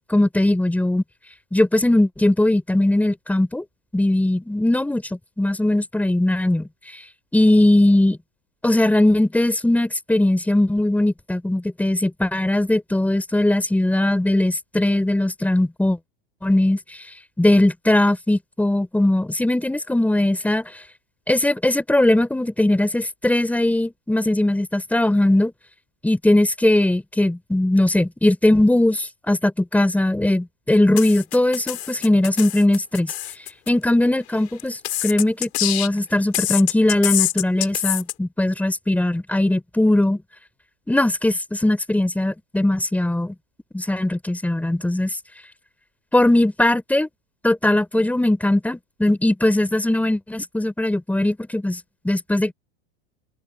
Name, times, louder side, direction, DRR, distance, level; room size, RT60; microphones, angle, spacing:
voice 1, 0.1-1.0 1.5-3.6 3.9-5.0 5.4-6.7 7.3-8.2 8.6-16.0 16.4-16.8 17.4-20.7 21.3-25.5 26.0-33.1 33.7-40.2 40.9-43.3 43.7-45.1 46.1-47.1 47.4-51.8 52.0-52.5, left 1 dB, 5° left, 4.7 m, -19 dB
sound 1, 31.0-33.7 34.6-36.0 36.3-38.1, left 14 dB, 80° left, 6.5 m, -25 dB
open air
hypercardioid pair, 115°, 32 cm